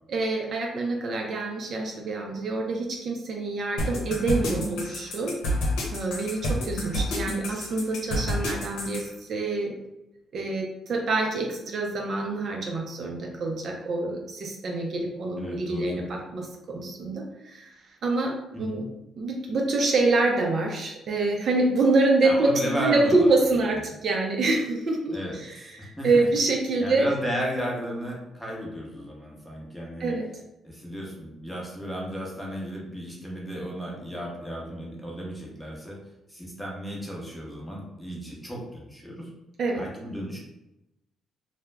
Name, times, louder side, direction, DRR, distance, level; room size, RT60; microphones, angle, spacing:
voice 1, 0.1-5.4 5.9-9.8 10.3-17.7 18.0-18.9 19.2-27.1 30.0-30.3 39.6-39.8, right 2 dB, 55° right, 1 dB, 0.4 m, -26 dB
sound 1, 3.8-9.0, equal, 90° left, 0.6 m, -28 dB
voice 2, 15.4-16.2 18.5-18.8 22.2-23.4 25.1-26.2 26.8-30.1 30.6-36.0 36.3-39.3 39.7-40.4, equal, 5° left, -3 dB, 0.8 m, -34 dB
2.3 x 2.0 x 3.2 m, 0.90 s
cardioid pair, 90°, 0 cm